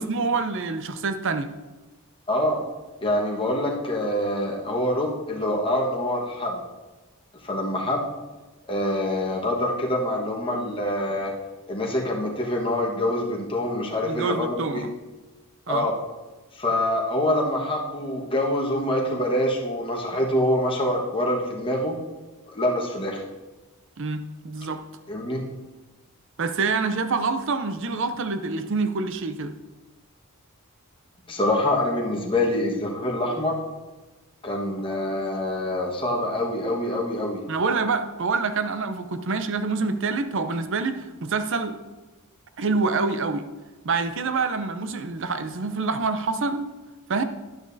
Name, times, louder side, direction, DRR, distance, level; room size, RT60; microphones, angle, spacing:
voice 1, 0.0-1.5 14.0-14.9 15.7-15.9 24.0-24.8 26.4-29.5 37.5-41.8 42.6-43.5 43.8-46.7 47.1-47.2, right 4 dB, 60° right, 9 dB, 0.6 m, -26 dB
voice 2, 2.3-2.6 3.0-6.6 7.4-8.1 8.7-11.3 11.7-14.8 15.7-15.9 16.5-22.0 22.5-23.2 25.1-25.5 31.3-33.6 34.4-37.4, left 1 dB, 25° left, -2 dB, 1.4 m, -25 dB
10.5 x 9.3 x 2.7 m, 1.2 s
head